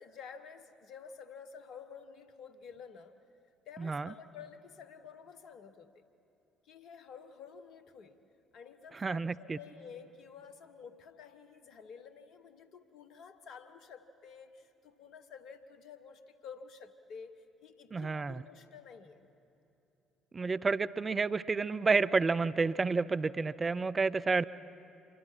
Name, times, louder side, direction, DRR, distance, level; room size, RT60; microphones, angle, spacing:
voice 1, 0.0-3.1 3.7-6.0 6.6-8.2 8.5-19.2, left 6 dB, 60° left, 10 dB, 1.3 m, -51 dB
voice 2, 3.8-4.1 8.9-9.6 17.9-18.4 20.3-24.4, right 4 dB, 30° right, 15 dB, 0.5 m, -30 dB
27.0 x 23.5 x 5.9 m, 3.0 s
figure-of-eight pair, 50°, 0 cm